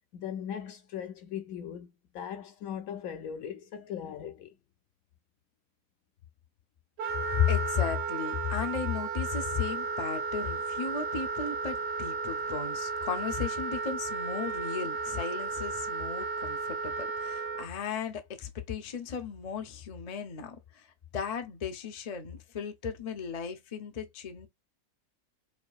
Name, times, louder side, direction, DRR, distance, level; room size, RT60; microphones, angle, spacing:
voice 1, 0.1-1.9 2.1-4.5, left 9 dB, 70° left, 0.9 m, -39 dB
Wind instrument woodwind instrument, 7.0-17.7, right 4 dB, 85° right, 1.5 m, -34 dB
voice 2, 7.3-20.9 21.1-24.5, left 7 dB, 45° left, 0.5 m, -34 dB
4.7 x 2.7 x 2.3 m
omnidirectional pair, 1.7 m